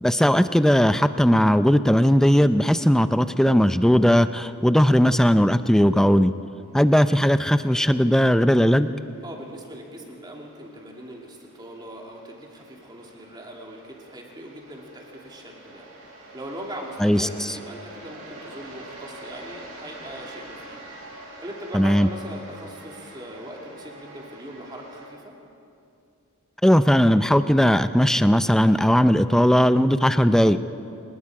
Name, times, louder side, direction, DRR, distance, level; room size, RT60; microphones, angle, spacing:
voice 1, 0.0-6.3 6.7-8.9 17.0-17.3 21.7-22.1 26.6-30.6, equal, ahead, 11 dB, 0.5 m, -18 dB
sound 1, 6.9-25.1, right 2 dB, 70° right, 6.8 m, -46 dB
voice 2, 9.2-20.8 21.1-25.3, right 1 dB, 20° right, 0 dB, 2.6 m, -40 dB
26.5 x 20.5 x 4.9 m, 2.6 s
head